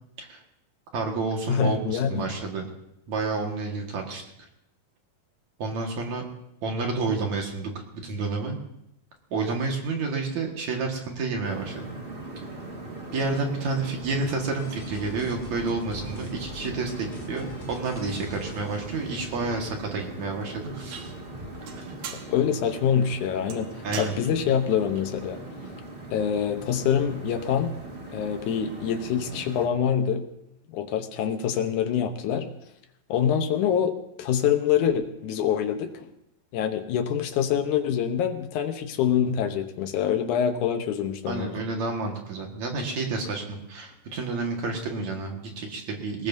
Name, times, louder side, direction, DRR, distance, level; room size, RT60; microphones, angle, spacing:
voice 1, 0.9-2.7 3.1-4.2 5.6-6.2 6.6-8.6 9.3-11.9 13.1-21.1 21.7-21.8 23.8-24.2 41.3-46.3, right 3 dB, 55° right, 1 dB, 2.7 m, -30 dB
voice 2, 1.5-2.3 22.1-23.7 24.0-25.4 26.1-27.7 28.1-30.2 30.7-32.5 33.1-33.9 34.2-36.1 36.5-41.5, left 8 dB, 70° left, 7 dB, 2.0 m, -25 dB
sound 1, 11.4-29.7, right 2 dB, 25° right, 1.3 m, -40 dB
sound 2, 14.6-19.7, left 2 dB, 35° left, 1.9 m, -44 dB
sound 3, 20.9-27.2, right 8 dB, 80° right, 3.0 m, -45 dB
20.5 x 19.5 x 2.7 m, 0.82 s
omnidirectional pair, 4.3 m